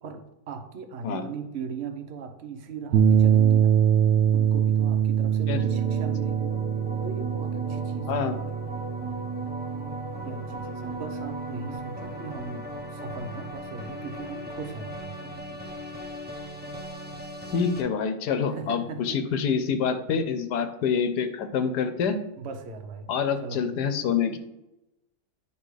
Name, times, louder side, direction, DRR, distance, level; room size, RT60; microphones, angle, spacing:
voice 1, 0.0-3.7 4.3-6.5 7.0-8.3 10.2-12.7 12.9-15.8 18.5-19.2 22.4-23.1 23.4-23.6, right 5 dB, 45° right, 6 dB, 1.0 m, -38 dB
sound 1, 2.9-11.4, right 9 dB, 80° right, 0.6 m, -24 dB
sound 2, 5.5-17.8, right 1 dB, 10° right, 0.5 m, -37 dB
voice 2, 17.5-22.2 23.1-24.4, left 6 dB, 75° left, 9 dB, 1.3 m, -26 dB
10.0 x 5.1 x 3.2 m, 0.94 s
omnidirectional pair, 1.8 m